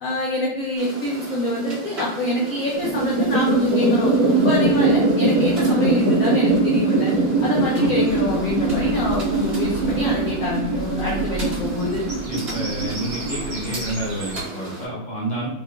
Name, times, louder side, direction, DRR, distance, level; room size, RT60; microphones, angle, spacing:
voice 1, 0.0-7.1 7.4-12.0, left 2 dB, 75° left, -4 dB, 0.7 m, -25 dB
sound 1, 0.8-14.9, right 1 dB, 35° right, 1.3 m, -36 dB
sound 2, 2.8-13.5, right 2 dB, 75° right, 1.4 m, -21 dB
Bird vocalization bird call bird song, 8.1-14.4, right 3 dB, 55° right, 1.2 m, -34 dB
voice 2, 12.3-15.5, right 1 dB, 5° left, -8 dB, 0.8 m, -29 dB
4.4 x 2.3 x 2.4 m, 0.88 s
omnidirectional pair, 2.2 m